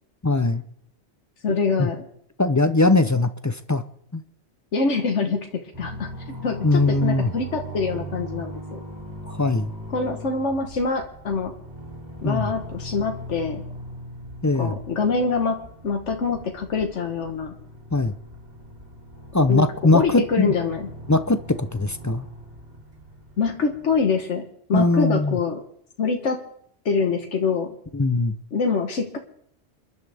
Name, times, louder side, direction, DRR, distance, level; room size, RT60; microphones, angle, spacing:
voice 1, 0.2-0.6 1.8-1.9 2.4-3.8 4.1-4.2 6.6-7.3 9.3-9.7 12.2-12.5 14.4-14.7 17.9-18.2 19.3-20.5 21.1-22.3 24.7-25.4 27.9-28.3, left 2 dB, 20° left, 11 dB, 0.5 m, -20 dB
voice 2, 1.4-2.0 4.7-6.1 6.4-8.8 9.9-11.5 12.2-13.6 14.6-17.5 19.5-19.7 19.9-20.9 23.4-25.6 26.0-26.4 26.9-27.7 28.5-29.2, left 4 dB, 90° left, 4 dB, 1.6 m, -25 dB
sound 1, 5.7-24.1, right 1 dB, 35° right, 3.2 m, -39 dB
29.0 x 11.5 x 3.5 m, 0.68 s
omnidirectional pair, 1.2 m